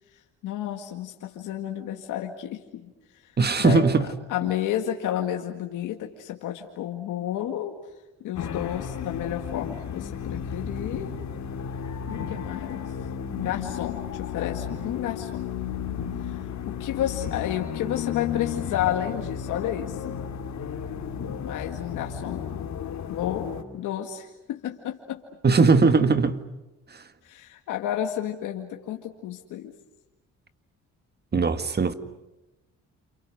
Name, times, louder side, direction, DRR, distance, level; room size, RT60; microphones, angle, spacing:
voice 1, 0.4-2.9 3.2-3.3 3.6-3.8 4.3-7.7 8.2-11.2 12.1-12.9 13.4-15.4 16.2-20.4 21.4-22.4 23.1-25.2 27.2-29.7, left 11 dB, 85° left, 2.0 m, -31 dB
voice 2, 3.4-4.0 25.4-26.4 31.3-31.9, right 4 dB, 35° right, 1.8 m, -19 dB
sound 1, 8.3-23.6, left 8 dB, 65° left, 2.6 m, -33 dB
29.0 x 28.0 x 6.5 m
cardioid pair, 90°, 30 cm